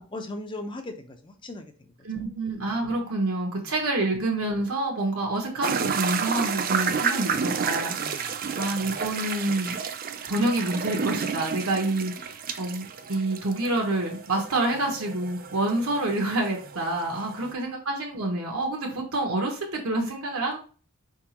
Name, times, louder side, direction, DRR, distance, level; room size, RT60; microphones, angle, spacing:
voice 1, 0.0-1.9 3.6-3.7 8.0-8.3 17.1-17.2, left 2 dB, 20° left, 6 dB, 0.6 m, -39 dB
voice 2, 2.0-9.8 10.3-20.6, right 2 dB, 80° right, 1 dB, 1.2 m, -28 dB
sound 1, 5.6-17.5, right 6 dB, 40° right, 0.4 m, -31 dB
4.7 x 3.6 x 2.9 m, 0.38 s
head